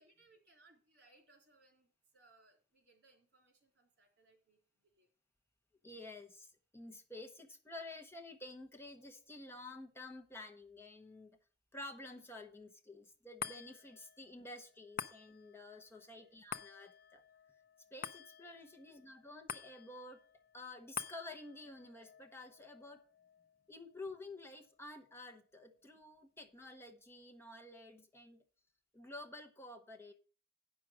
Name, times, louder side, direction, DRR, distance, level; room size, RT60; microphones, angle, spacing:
voice 1, 0.0-5.1 16.1-16.4 18.4-18.6, right 2 dB, 65° right, 2 dB, 3.4 m, -68 dB
voice 2, 5.8-11.3 11.7-17.2 17.9-20.2 20.5-23.0 23.7-28.4 28.9-30.1, left 2 dB, 15° left, 3 dB, 1.0 m, -51 dB
sound 1, 13.4-26.0 26.4-26.5, left 7 dB, 55° left, 0.6 m, -50 dB
9.1 x 6.2 x 6.3 m, 0.38 s
head